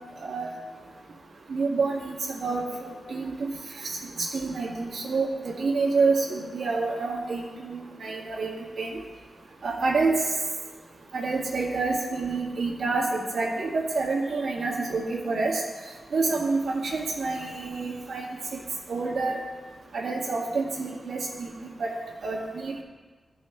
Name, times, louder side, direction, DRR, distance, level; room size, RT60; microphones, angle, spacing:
voice 1, 0.2-0.5 1.5-3.5 3.8-8.9 9.6-10.2 11.1-15.6 16.1-18.3 18.5-18.6 18.9-19.4 19.9-21.5 21.8-22.0 22.2-22.8, right 3 dB, 70° right, -4 dB, 1.9 m, -28 dB
14.5 x 6.2 x 3.2 m, 1.4 s
wide cardioid pair, 160°, 0 cm